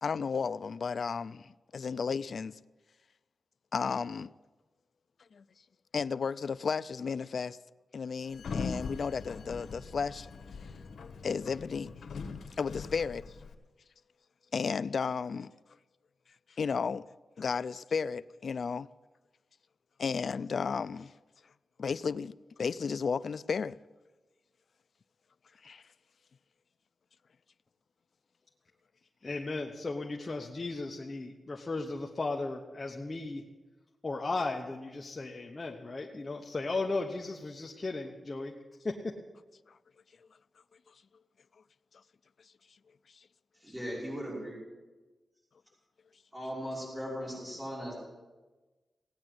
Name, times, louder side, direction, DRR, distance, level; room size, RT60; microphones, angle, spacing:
voice 1, 0.0-2.6 3.7-4.3 5.3-5.4 5.9-7.6 7.9-10.3 11.2-11.9 12.6-13.3 14.5-15.5 16.6-17.0 17.4-18.9 20.0-21.1 21.8-23.8 25.6-25.8 39.7-39.8, left 5 dB, 60° left, 0.4 m, -33 dB
Sliding door, 8.3-13.5, left 4 dB, 90° left, 1.3 m, -41 dB
voice 2, 29.2-33.4 34.0-38.5 38.8-39.1, left 3 dB, 30° left, 1.1 m, -36 dB
voice 3, 43.6-44.6 46.3-48.0, equal, 10° right, 5.7 m, -38 dB
17.0 x 9.6 x 7.8 m
wide cardioid pair, 135°, 0 cm